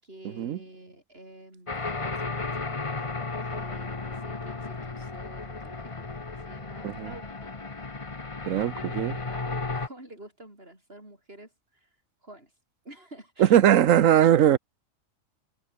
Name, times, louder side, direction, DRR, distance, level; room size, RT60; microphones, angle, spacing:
voice 1, 0.0-2.8 3.5-6.0 6.3-7.5 8.5-11.9 12.2-12.5 12.8-13.6, right 1 dB, 45° right, 8.4 m, -48 dB
sound 1, 1.7-9.9, left 3 dB, 25° left, 1.3 m, -34 dB
voice 2, 8.5-9.2 13.4-14.6, right 11 dB, 75° right, 1.2 m, -20 dB
omnidirectional pair, 1.4 m